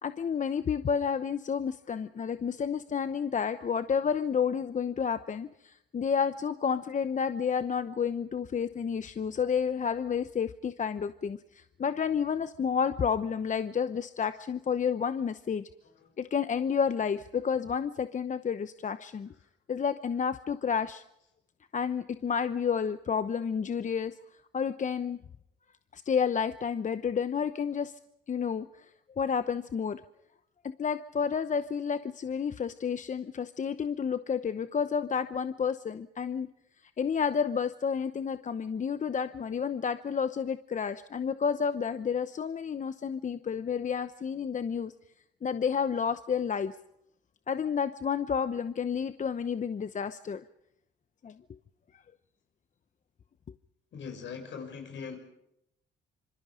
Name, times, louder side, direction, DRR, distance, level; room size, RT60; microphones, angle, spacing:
voice 1, 0.0-15.6 16.2-19.3 19.7-21.0 21.7-24.1 24.5-25.2 25.9-27.9 28.3-28.9 29.2-30.0 30.6-36.5 37.0-44.9 45.4-46.7 47.5-50.4 51.2-51.3, left 6 dB, 40° left, 0.9 m, -30 dB
voice 2, 53.9-55.2, left 6 dB, 70° left, 6.5 m, -41 dB
26.5 x 24.5 x 5.1 m
cardioid pair, 90°, 20 cm